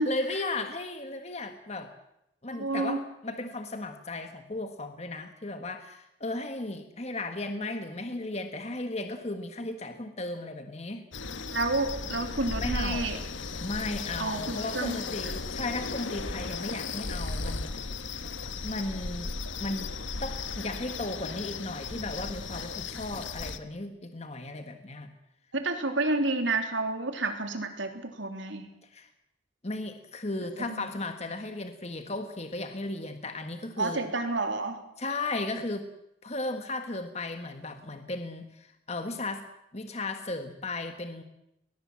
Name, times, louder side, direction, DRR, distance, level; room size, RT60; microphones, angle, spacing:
voice 1, 0.0-1.9 2.4-11.1 12.6-13.1 13.6-17.7 18.6-19.3 19.6-19.9 20.2-25.1 28.9-29.1 29.6-34.1 35.0-35.9 36.2-39.5 39.7-41.2, left 2 dB, 35° left, 7 dB, 1.6 m, -35 dB
voice 2, 2.5-3.0 11.5-13.2 14.2-15.0 25.5-28.7 30.6-30.9 33.8-34.8, right 2 dB, 75° right, 6 dB, 3.4 m, -30 dB
sound 1, 11.1-23.6, left 4 dB, 80° left, 1.5 m, -36 dB
22.0 x 21.5 x 7.4 m, 0.82 s
head